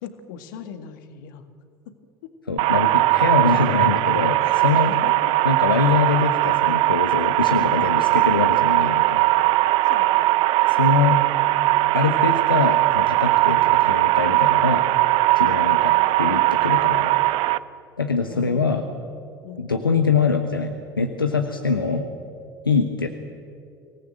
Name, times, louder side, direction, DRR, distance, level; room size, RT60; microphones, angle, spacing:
voice 1, 0.0-1.5 1.9-2.0 2.2-2.4 4.4-5.3 9.8-10.3 18.3-19.1 19.4-19.7, left 8 dB, 65° left, 8 dB, 2.0 m, -39 dB
voice 2, 2.5-4.9 5.4-9.2 10.7-11.2 11.9-14.8 15.3-17.1 18.0-18.8 19.6-22.1 22.6-23.1, left 4 dB, 90° left, 6 dB, 1.2 m, -23 dB
sound 1, 2.6-17.6, right 18 dB, 55° right, 0.7 m, -19 dB
24.5 x 18.5 x 7.8 m, 2.4 s
figure-of-eight pair, 70°, 11 cm